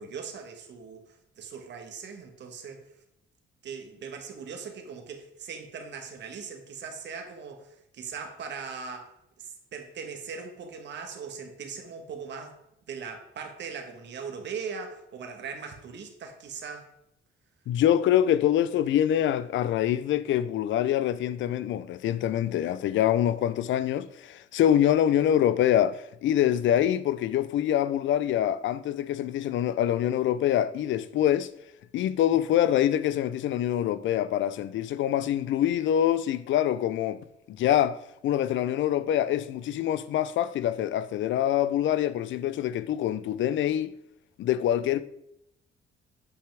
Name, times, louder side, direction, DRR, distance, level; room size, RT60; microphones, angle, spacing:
voice 1, 0.0-2.9 3.6-9.1 9.4-12.6 12.9-16.9, right 5 dB, 65° right, 1.4 m, -40 dB
voice 2, 17.7-31.5 31.9-37.2 37.5-38.0 38.2-43.9 44.4-45.0, left 11 dB, 70° left, 0.5 m, -25 dB
8.2 x 5.8 x 3.4 m
cardioid pair, 90°, 20 cm